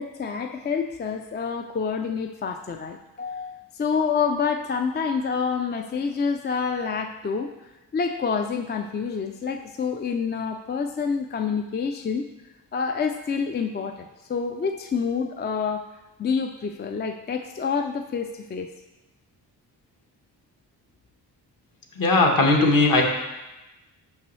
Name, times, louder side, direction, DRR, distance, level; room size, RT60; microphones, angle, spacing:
voice 1, 0.0-7.5 7.9-12.2 12.7-15.8 16.2-18.7, left 5 dB, 25° left, 5 dB, 0.3 m, -27 dB
voice 2, 22.0-23.0, left 2 dB, 55° left, 1 dB, 1.2 m, -18 dB
5.7 x 5.3 x 3.1 m, 1.0 s
cardioid pair, 60°, 41 cm